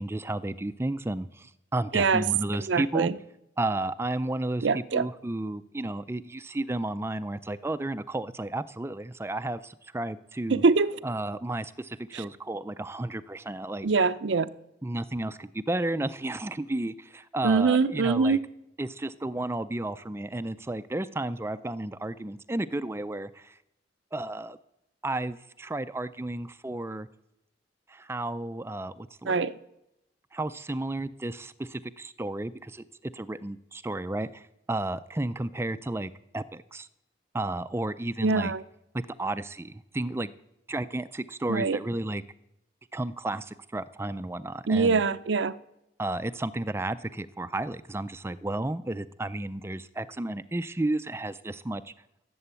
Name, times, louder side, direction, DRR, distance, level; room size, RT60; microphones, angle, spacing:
voice 1, 0.0-3.1 3.6-10.6 11.0-13.9 14.8-18.4 18.8-23.6 24.1-24.6 25.0-27.1 27.9-29.4 30.3-32.8 33.1-36.9 37.3-38.5 38.9-40.3 40.7-42.2 42.9-45.0 46.0-51.9, right 2 dB, 15° right, 0.4 m, -32 dB
voice 2, 1.9-2.2 2.7-3.2 4.6-5.1 10.5-11.0 12.1-12.3 13.8-14.5 17.4-18.4 29.3-29.6 38.2-38.6 41.5-41.8 44.7-45.5, right 4 dB, 75° right, 0.6 m, -24 dB
17.0 x 7.8 x 8.2 m
head